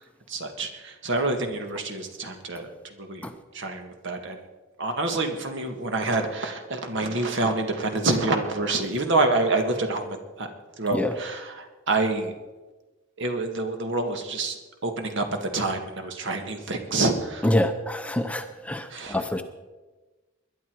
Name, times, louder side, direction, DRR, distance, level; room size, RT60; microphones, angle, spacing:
voice 1, 0.3-3.3 3.5-4.4 4.8-10.5 10.8-12.3 13.2-17.5 18.9-19.2, right 2 dB, 60° right, 5 dB, 1.9 m, -27 dB
voice 2, 17.4-19.4, left 1 dB, 5° left, 7 dB, 0.7 m, -26 dB
21.0 x 11.0 x 4.7 m, 1.2 s
head